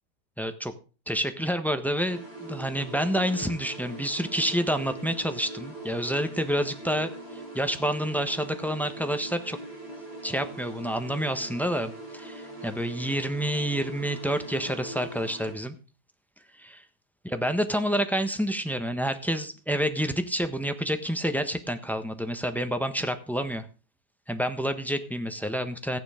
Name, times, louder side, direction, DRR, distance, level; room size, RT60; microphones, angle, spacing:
voice 1, 0.4-0.7 1.1-9.6 10.2-15.7 16.6-16.8 17.2-23.7 24.3-26.0, equal, ahead, 9 dB, 1.0 m, -28 dB
sound 1, 2.0-15.5, right 2 dB, 85° right, 3.9 m, -42 dB
15.0 x 9.5 x 5.1 m, 0.35 s
omnidirectional pair, 1.7 m